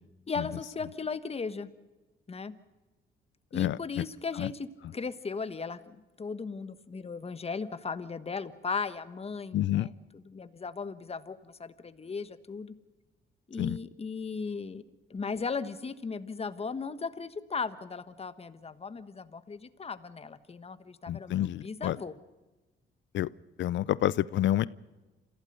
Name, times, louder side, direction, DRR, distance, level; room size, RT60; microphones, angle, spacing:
voice 1, 0.3-1.7 2.3-2.5 3.5-12.7 13.5-14.8 15.1-22.1, left 5 dB, 30° left, 13 dB, 1.3 m, -37 dB
voice 2, 3.5-4.0 4.4-4.5 9.5-9.9 13.6-13.8 21.1-22.0 23.1-23.3 23.6-24.7, left 13 dB, 70° left, 20 dB, 0.6 m, -28 dB
27.0 x 16.0 x 6.8 m, 1.2 s
cardioid pair, 90°, 20 cm